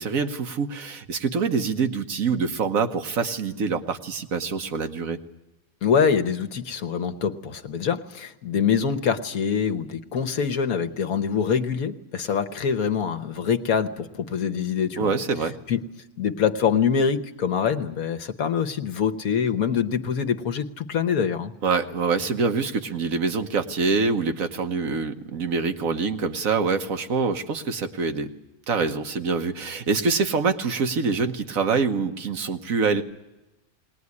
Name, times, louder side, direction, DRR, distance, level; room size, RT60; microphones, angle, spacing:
voice 1, 0.0-5.2 15.0-15.5 21.6-28.3 28.7-33.0, right 5 dB, 75° right, 7 dB, 1.6 m, -25 dB
voice 2, 5.8-15.1 15.7-15.8 16.2-21.5, left 7 dB, 85° left, 9 dB, 1.5 m, -24 dB
20.5 x 19.0 x 9.7 m, 1.0 s
omnidirectional pair, 1.5 m